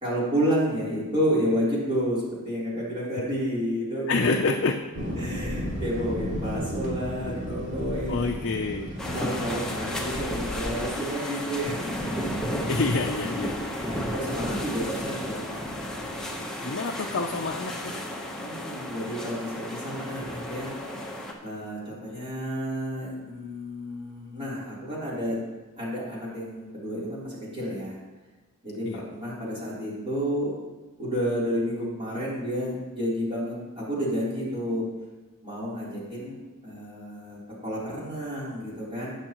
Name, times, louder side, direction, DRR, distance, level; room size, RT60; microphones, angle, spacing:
voice 1, 0.0-4.3 5.2-8.3 9.0-12.4 13.8-15.6 18.4-20.7 21.4-25.4 25.8-28.0 28.6-30.5 31.0-34.9 35.4-39.2, equal, 25° right, -8 dB, 3.6 m, -30 dB
voice 2, 4.1-4.7 8.1-8.9 12.7-13.9 16.6-17.9 28.8-29.0, left 3 dB, 55° left, 2 dB, 0.5 m, -27 dB
Thunder, 4.9-10.8, equal, 50° right, 2.8 m, -34 dB
sound 1, 9.0-21.3, equal, 5° left, 1.0 m, -33 dB
18.5 x 6.5 x 3.0 m, 1.2 s
head